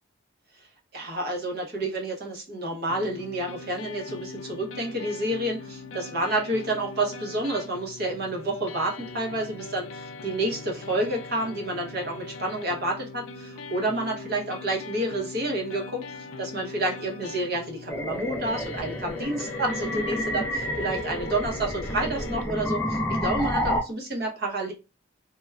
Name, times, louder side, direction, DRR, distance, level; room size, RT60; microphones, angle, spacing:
voice 1, 0.9-24.7, right 1 dB, 50° right, 0 dB, 0.8 m, -29 dB
sound 1, 2.9-22.5, left 3 dB, 80° left, 0.4 m, -41 dB
sound 2, 17.9-23.8, equal, 10° left, 0.4 m, -30 dB
3.2 x 2.2 x 2.3 m, 0.29 s
head